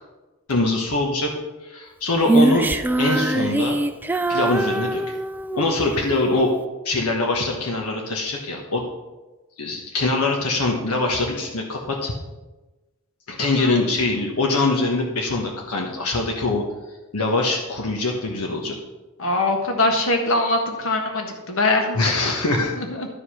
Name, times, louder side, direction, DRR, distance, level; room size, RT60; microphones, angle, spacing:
voice 1, 0.5-1.4 1.6-2.7 3.0-3.8 4.3-5.0 5.6-6.5 6.8-8.9 9.6-12.1 13.3-16.7 17.1-18.8 21.9-22.7, left 2 dB, 85° left, 0 dB, 1.2 m, -23 dB
Female singing, 2.2-5.8, right 2 dB, 10° right, 0.3 m, -22 dB
voice 2, 19.2-22.0 22.8-23.1, left 2 dB, 65° left, 3 dB, 1.5 m, -22 dB
12.5 x 4.9 x 5.7 m, 1.1 s
head